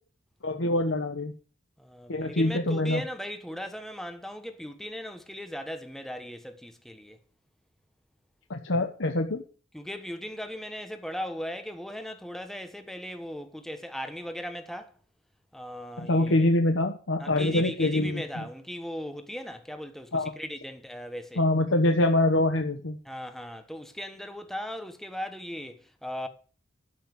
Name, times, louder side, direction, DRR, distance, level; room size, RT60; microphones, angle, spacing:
voice 1, 0.4-1.3 2.1-3.0 8.5-9.4 16.0-18.5 20.1-20.3 21.4-23.0, left 1 dB, 65° left, 1.1 m, -25 dB
voice 2, 1.8-7.2 9.7-14.9 15.5-16.5 17.2-21.4 23.0-26.3, equal, ahead, 1.2 m, -38 dB
12.0 x 5.8 x 7.8 m
head